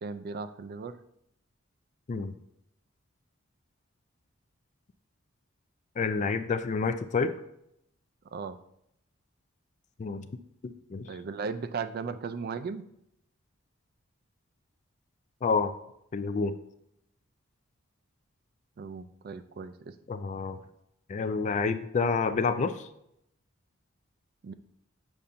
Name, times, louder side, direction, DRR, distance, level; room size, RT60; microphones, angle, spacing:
voice 1, 0.0-1.0 8.3-8.6 11.1-12.8 18.8-19.9 24.4-24.5, right 5 dB, 45° right, 11 dB, 0.3 m, -36 dB
voice 2, 6.0-7.3 10.0-10.3 10.6-11.1 15.4-15.7 16.1-16.5 20.1-20.6 21.1-22.9, left 4 dB, 35° left, 11 dB, 0.3 m, -28 dB
7.0 x 5.3 x 2.5 m, 0.76 s
head